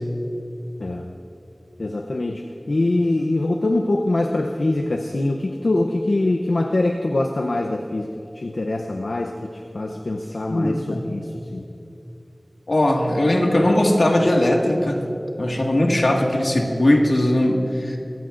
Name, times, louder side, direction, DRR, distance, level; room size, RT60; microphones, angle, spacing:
voice 1, 1.8-8.1 8.3-11.7, left 2 dB, 85° left, 4 dB, 0.7 m, -23 dB
voice 2, 10.5-11.1 12.7-15.0 15.4-18.0, left 1 dB, 70° left, 0 dB, 1.9 m, -19 dB
24.0 x 15.5 x 2.6 m, 2.7 s
wide cardioid pair, 55°, 0 cm